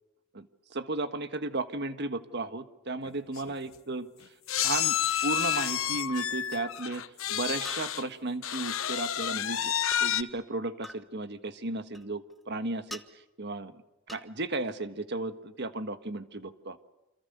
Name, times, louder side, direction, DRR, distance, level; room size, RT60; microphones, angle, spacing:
voice 1, 0.3-4.1 4.6-7.0 7.3-9.7 10.0-13.0 13.4-13.8 14.1-16.8, right 2 dB, 55° right, 9 dB, 1.5 m, -34 dB
sound 1, 3.1-3.2 3.4-3.5 4.5-8.1 8.4-10.2, left 10 dB, 80° left, 0.9 m, -30 dB
sound 2, 6.5-6.6 7.6-7.8 8.7-8.8 9.9-10.1 10.8-11.0 11.9-12.4 12.9-13.1 14.1-14.3, equal, ahead, 1.2 m, -44 dB
28.5 x 26.5 x 6.8 m, 0.94 s
head